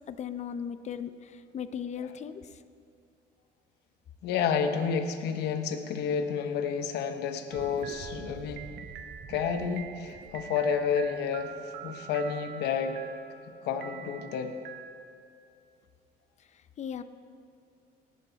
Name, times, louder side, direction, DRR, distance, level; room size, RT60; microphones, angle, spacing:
voice 1, 0.0-2.6 16.5-17.0, left 8 dB, 45° left, 11 dB, 0.6 m, -38 dB
voice 2, 4.2-8.7 9.3-13.0 13.6-14.5, left 6 dB, 80° left, 7 dB, 0.9 m, -30 dB
sound 1, 7.5-12.2, right 6 dB, 45° right, 0.6 m, -47 dB
sound 2, 7.5-15.4, right 8 dB, 80° right, 0.9 m, -46 dB
17.5 x 7.8 x 4.0 m, 2.5 s
cardioid pair, 110°, 17 cm